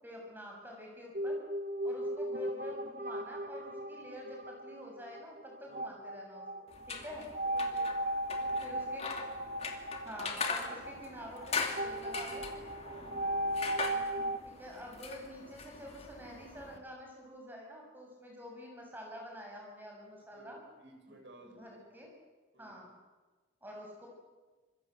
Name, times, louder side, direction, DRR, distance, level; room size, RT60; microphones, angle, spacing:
voice 1, 0.0-1.4 1.8-7.3 8.6-9.0 10.0-12.5 14.4-20.6 21.5-22.1 22.6-22.9 23.6-24.1, equal, 10° right, 0 dB, 7.0 m, -48 dB
sound 1, 1.1-14.4, right 1 dB, 45° right, 1.1 m, -37 dB
sound 2, 6.7-16.8, left 4 dB, 35° left, 2.5 m, -41 dB
voice 2, 7.4-8.0 8.3-8.7 9.5-9.8 12.8-13.3 20.1-22.1 22.5-22.9, right 1 dB, 75° right, 2 dB, 7.5 m, -57 dB
26.0 x 22.5 x 7.9 m, 1.3 s
head